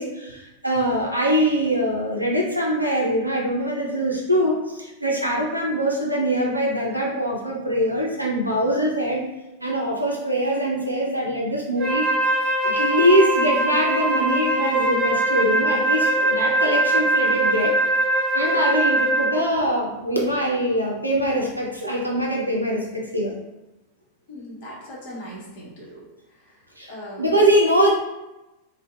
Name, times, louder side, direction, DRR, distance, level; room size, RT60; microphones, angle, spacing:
voice 1, 0.0-9.2 9.6-12.1 12.6-17.7 18.3-23.3 26.8-26.9 27.2-27.9, equal, 90° right, -2 dB, 0.4 m, -23 dB
Wind instrument woodwind instrument, 11.8-19.4, right 1 dB, 25° right, 1.1 m, -21 dB
voice 2, 24.3-26.0 26.4-26.5 26.9-27.2, equal, 50° left, -6 dB, 0.8 m, -39 dB
2.6 x 2.1 x 2.3 m, 0.97 s
figure-of-eight pair, 90°, 0 cm